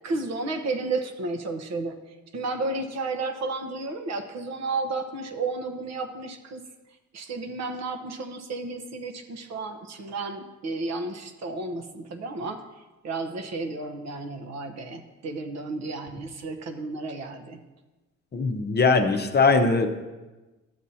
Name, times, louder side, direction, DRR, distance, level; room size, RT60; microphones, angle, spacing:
voice 1, 0.0-2.0 2.3-6.6 7.1-12.6 13.0-17.6, right 3 dB, 60° right, 6 dB, 0.9 m, -32 dB
voice 2, 18.3-19.9, left 4 dB, 35° left, 6 dB, 0.8 m, -21 dB
12.0 x 7.3 x 2.8 m, 1.1 s
cardioid pair, 90°, 30 cm